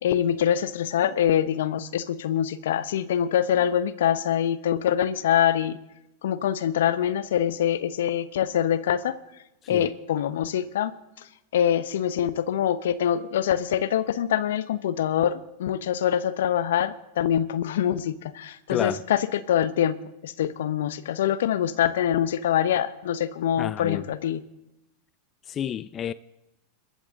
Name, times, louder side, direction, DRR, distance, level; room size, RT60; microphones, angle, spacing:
voice 1, 0.0-5.8 6.2-9.1 9.7-10.9 11.5-24.4, left 10 dB, 75° left, 1.0 m, -24 dB
voice 2, 18.7-19.0 23.6-24.1 25.5-26.1, left 9 dB, 35° left, 0.5 m, -30 dB
26.0 x 14.0 x 3.8 m
hypercardioid pair, 95°, 0 cm